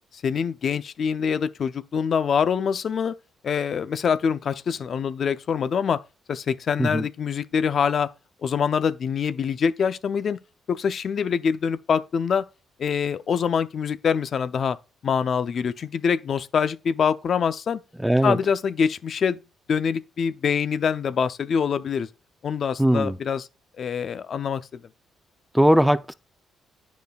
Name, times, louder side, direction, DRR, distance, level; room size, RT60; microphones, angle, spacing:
voice 1, 0.1-3.1 3.4-6.0 6.3-8.1 8.4-10.4 10.7-12.4 12.8-14.8 15.0-17.8 18.2-19.4 19.7-22.1 22.4-23.5 23.8-24.8, left 6 dB, 55° left, 0.5 m, -25 dB
voice 2, 18.0-18.4 22.8-23.2 25.5-26.1, equal, 5° right, 0.5 m, -19 dB
9.1 x 5.1 x 2.3 m
cardioid pair, 90°, 0 cm